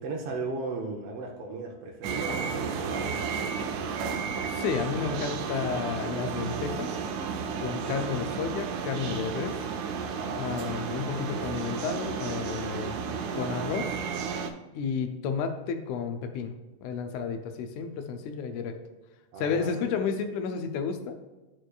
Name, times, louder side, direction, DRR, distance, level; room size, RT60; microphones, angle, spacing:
voice 1, 0.0-3.2 7.6-8.0 10.1-11.0 19.3-20.0, right 3 dB, 70° right, 1 dB, 1.5 m, -37 dB
sound 1, 2.0-14.5, right 6 dB, 90° right, 2.0 m, -33 dB
voice 2, 4.5-6.9 7.6-9.6 10.4-13.0 13.3-14.0 14.7-16.5 16.8-18.8 19.4-21.2, left 6 dB, 90° left, 7 dB, 2.1 m, -32 dB
11.0 x 4.5 x 2.3 m, 1.1 s
omnidirectional pair, 3.3 m